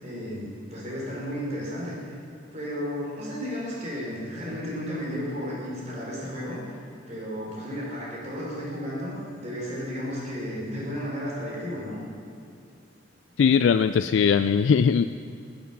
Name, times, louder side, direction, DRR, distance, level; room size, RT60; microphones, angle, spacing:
voice 1, 0.0-2.1 2.5-6.7 7.1-12.0, equal, 35° right, -5 dB, 4.6 m, -33 dB
voice 2, 13.4-15.1, left 6 dB, 75° left, 10 dB, 0.3 m, -20 dB
16.5 x 8.7 x 7.0 m, 2.4 s
head